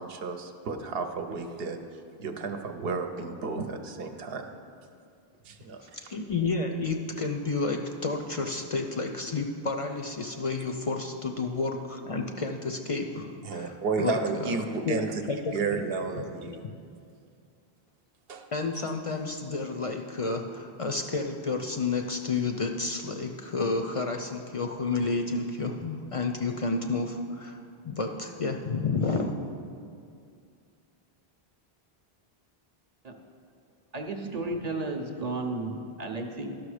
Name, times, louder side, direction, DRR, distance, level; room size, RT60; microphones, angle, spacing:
voice 1, 0.0-1.8 2.2-4.5 5.4-5.8 13.4-15.2 15.5-16.6 18.3-18.5, right 4 dB, 70° right, 6 dB, 0.9 m, -32 dB
voice 2, 5.8-15.8 16.2-16.7 18.5-29.4, left 3 dB, 45° left, 4 dB, 0.5 m, -31 dB
voice 3, 33.9-36.6, right 2 dB, 45° right, 3 dB, 0.7 m, -33 dB
12.0 x 6.1 x 4.9 m, 2.4 s
omnidirectional pair, 1.0 m